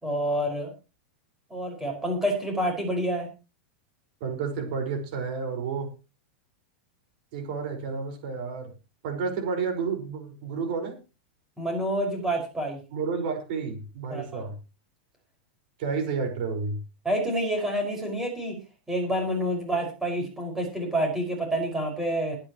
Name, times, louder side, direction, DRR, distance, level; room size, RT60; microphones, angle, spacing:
voice 1, 0.0-0.7 1.5-3.3 11.6-12.8 14.1-14.4 17.0-18.6 18.9-22.4, right 1 dB, 5° right, 1 dB, 5.6 m, -28 dB
voice 2, 4.2-5.9 7.3-8.7 9.0-11.0 12.9-14.6 15.8-16.8, right 5 dB, 50° right, 5 dB, 5.1 m, -30 dB
21.5 x 9.9 x 3.1 m, 0.30 s
supercardioid pair, 165°, 6 cm